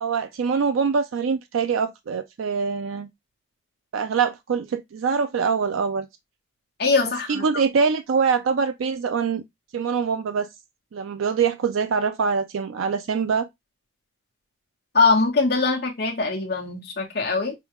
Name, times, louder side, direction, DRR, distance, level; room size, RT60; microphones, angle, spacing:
voice 1, 0.0-3.1 3.9-6.1 7.3-9.4 9.7-10.5 10.9-13.5, right 5 dB, 90° right, 0.4 m, -24 dB
voice 2, 6.8-7.4 14.9-17.5, left 4 dB, 50° left, 1.2 m, -22 dB
5.3 x 2.3 x 3.0 m
head